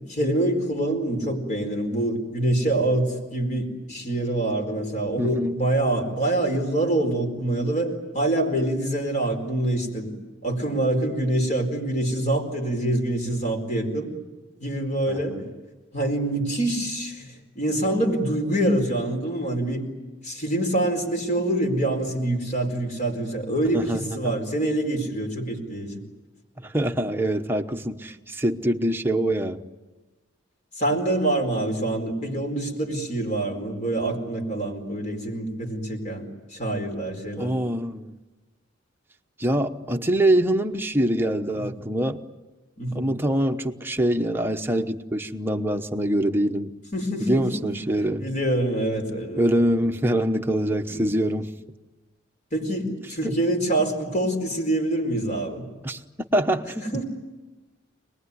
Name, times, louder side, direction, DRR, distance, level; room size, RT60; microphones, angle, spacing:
voice 1, 0.1-10.1 10.4-14.1 14.6-15.4 15.9-19.8 20.2-26.0 30.8-36.3 36.5-37.5 41.5-41.8 42.8-43.1 46.9-47.7 48.2-49.4 50.9-51.0 52.5-55.6 56.7-57.0, right 1 dB, 40° left, 4.5 m, -25 dB
voice 2, 5.2-5.6 15.1-15.5 23.7-24.3 26.6-29.6 37.4-38.1 39.4-42.2 42.9-46.7 47.2-48.3 49.4-51.5 53.2-53.3 55.8-56.0 56.3-57.0, right 1 dB, 10° right, 1.1 m, -24 dB
26.5 x 20.5 x 9.7 m
head